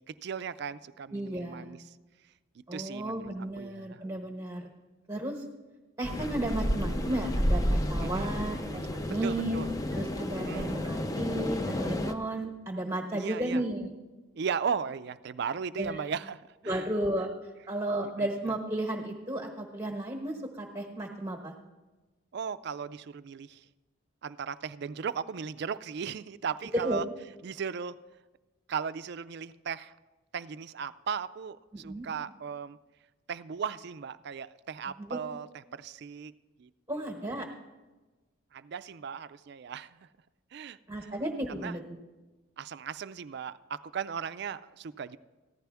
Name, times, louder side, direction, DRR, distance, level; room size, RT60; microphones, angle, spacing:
voice 1, 0.0-2.0 2.6-3.3 3.6-4.0 8.0-8.8 9.1-9.7 10.3-10.8 13.1-13.6 14.3-16.9 18.2-18.3 22.3-23.7 24.2-27.0 27.4-28.0 28.7-30.0 30.3-32.8 33.3-35.5 35.7-36.3 36.6-36.7 38.5-40.1 40.5-41.1 41.5-41.8 42.6-45.2, right 6 dB, 55° right, 15 dB, 0.4 m, -37 dB
voice 2, 1.1-1.8 2.7-4.7 5.1-5.4 6.0-9.6 9.9-13.9 15.8-16.0 16.7-17.3 17.7-21.5 26.7-27.0 31.7-32.1 35.0-35.2 36.9-37.5 40.9-41.8, right 1 dB, 15° right, 1 dB, 1.1 m, -33 dB
sound 1, 6.0-12.1, equal, 15° left, 0.5 m, -31 dB
15.0 x 10.5 x 3.4 m, 1.2 s
head